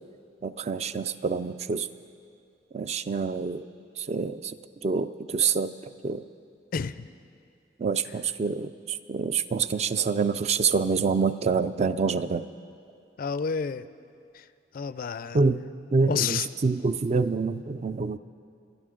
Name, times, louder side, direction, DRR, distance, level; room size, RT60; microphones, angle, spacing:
voice 1, 0.4-1.9 2.7-3.6 4.0-4.5 4.8-5.7 6.0-6.2 7.8-12.4 15.3-15.6 15.9-18.2, right 4 dB, 40° right, 12 dB, 0.4 m, -26 dB
voice 2, 6.7-7.1 8.0-8.1 13.2-13.9 14.3-14.5 14.7-15.4 16.1-16.5, left 6 dB, 55° left, 14 dB, 0.4 m, -30 dB
25.0 x 11.0 x 3.8 m, 2.5 s
head